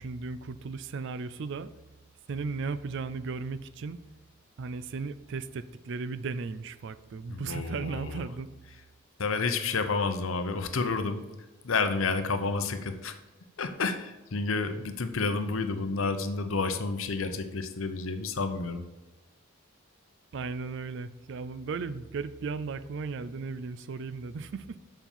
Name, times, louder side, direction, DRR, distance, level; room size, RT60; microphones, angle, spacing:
voice 1, 0.0-1.7 2.3-4.0 4.6-8.5 20.3-24.8, right 4 dB, 55° right, 14 dB, 0.4 m, -36 dB
voice 2, 7.3-8.2 9.2-11.2 11.6-13.1 13.6-18.8, left 4 dB, 70° left, 9 dB, 0.7 m, -30 dB
7.2 x 5.6 x 5.4 m, 1.1 s
head